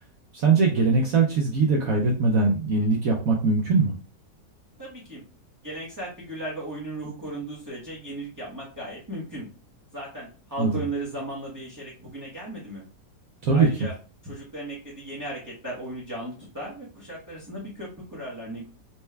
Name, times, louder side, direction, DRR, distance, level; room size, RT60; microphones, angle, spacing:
voice 1, 0.3-3.9 10.6-10.7 13.4-13.7, right 4 dB, 65° right, -1 dB, 1.0 m, -21 dB
voice 2, 4.8-5.2 5.6-9.5 9.9-12.8 13.5-13.9 14.2-18.7, right 1 dB, 15° right, -6 dB, 0.6 m, -36 dB
4.2 x 2.2 x 3.3 m, 0.36 s
omnidirectional pair, 1.9 m